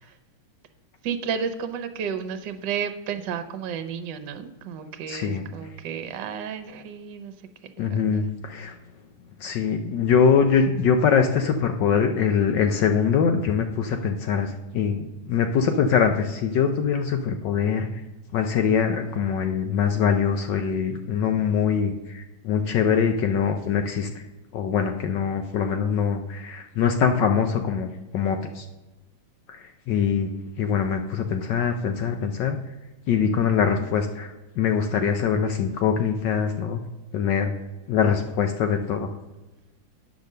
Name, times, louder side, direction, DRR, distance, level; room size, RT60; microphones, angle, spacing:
voice 1, 1.0-7.3 7.8-8.2, right 7 dB, 65° right, 8 dB, 1.3 m, -32 dB
voice 2, 5.1-5.4 7.8-8.7 9.4-17.9 18.3-24.1 24.5-28.6 29.5-29.6 29.9-30.3 30.6-32.6 33.1-36.8 37.1-37.5 37.9-39.1, left 6 dB, 70° left, 5 dB, 1.2 m, -23 dB
9.1 x 5.1 x 6.5 m, 1.1 s
omnidirectional pair, 2.3 m